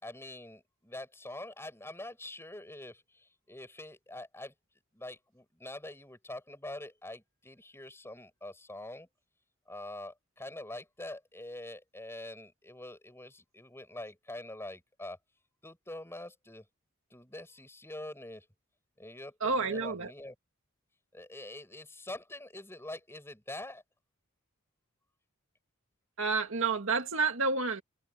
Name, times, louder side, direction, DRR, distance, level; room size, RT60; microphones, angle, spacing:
voice 1, 0.0-4.5 4.9-9.1 9.7-15.2 15.6-16.6 17.1-18.5 19.0-20.4 21.1-23.8, left 1 dB, 10° left, 6.9 m, -45 dB
voice 2, 19.4-20.1 26.2-27.8, right 4 dB, 65° right, 2.0 m, -29 dB
head